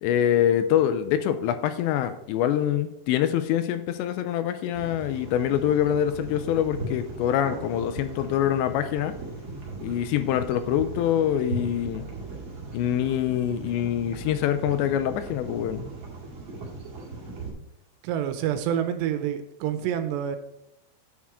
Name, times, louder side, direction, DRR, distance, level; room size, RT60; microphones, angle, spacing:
voice 1, 0.0-9.1 9.8-12.1 12.7-15.8, left 10 dB, 80° left, 10 dB, 2.8 m, -25 dB
sound 1, 4.7-17.5, right 3 dB, 40° right, 1.9 m, -38 dB
voice 2, 18.0-20.4, right 10 dB, 80° right, 9 dB, 2.8 m, -27 dB
9.5 x 6.3 x 4.8 m, 0.83 s
omnidirectional pair, 5.3 m